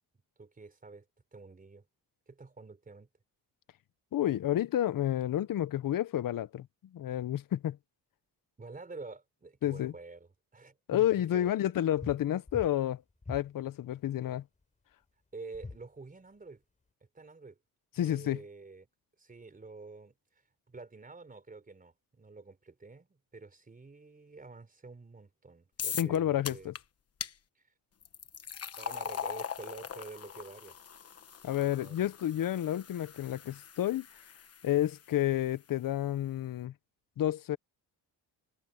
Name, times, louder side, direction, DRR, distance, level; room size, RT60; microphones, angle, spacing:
voice 1, 0.4-1.1 1.3-1.8 2.3-3.1 8.6-12.0 15.3-16.6 17.1-17.6 18.0-18.9 19.2-20.1 20.7-26.7 27.6-27.7 28.8-30.8 31.5-32.1, right 3 dB, 20° right, 4.3 m, -48 dB
voice 2, 4.1-6.7 6.9-7.8 9.6-9.9 10.9-13.0 13.3-14.4 18.0-18.4 26.0-26.7 31.4-34.1 34.6-36.7 37.2-37.6, left 12 dB, 55° left, 0.8 m, -30 dB
sound 1, 12.0-12.2 12.5-12.8 13.2-13.5 15.5-15.8, left 3 dB, 20° left, 3.9 m, -42 dB
sound 2, 25.8-26.2 26.5-26.8 27.2-27.3 28.0-35.1, left 8 dB, 35° left, 1.1 m, -41 dB
cardioid pair, 150°, 40 cm